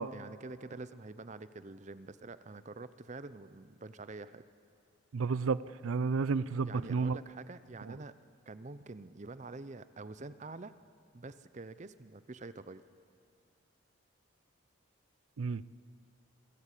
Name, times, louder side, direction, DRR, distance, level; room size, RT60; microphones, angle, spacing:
voice 1, 0.0-4.5 6.6-8.1 8.5-10.7 11.1-12.8, right 3 dB, 35° right, 14 dB, 0.6 m, -46 dB
voice 2, 5.1-7.2 7.9-8.0 15.4-15.6, right 4 dB, 85° right, 18 dB, 0.5 m, -31 dB
26.0 x 15.5 x 8.3 m, 2.4 s
head